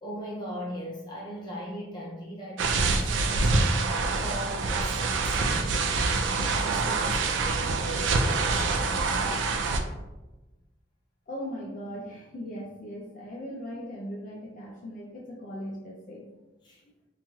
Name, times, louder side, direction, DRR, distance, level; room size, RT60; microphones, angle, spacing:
voice 1, 0.0-3.8 4.2-9.4 16.6-16.8, equal, 25° left, -4 dB, 0.7 m, -39 dB
sound 1, 2.6-9.8, right 3 dB, 70° right, 0.3 m, -26 dB
voice 2, 11.3-16.3 16.8-16.9, equal, 45° left, -2 dB, 0.3 m, -39 dB
2.9 x 2.3 x 2.9 m, 1.1 s
head